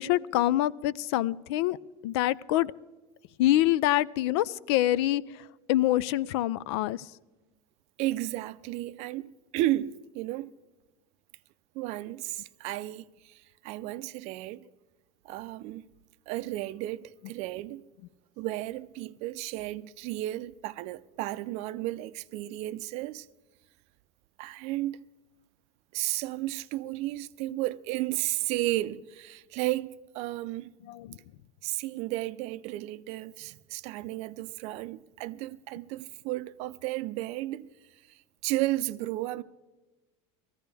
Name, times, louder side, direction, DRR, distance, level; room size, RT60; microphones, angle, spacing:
voice 1, 0.0-1.8 2.0-2.7 3.4-7.1 30.9-31.2, left 14 dB, 80° left, 0.4 m, -26 dB
voice 2, 8.0-10.5 11.7-14.7 15.2-15.9 16.3-17.8 18.4-23.3 24.4-25.0 25.9-30.7 31.6-37.7 38.1-39.4, right 16 dB, 50° right, 0.5 m, -33 dB
18.5 x 14.5 x 3.4 m
cardioid pair, 155°, 14 cm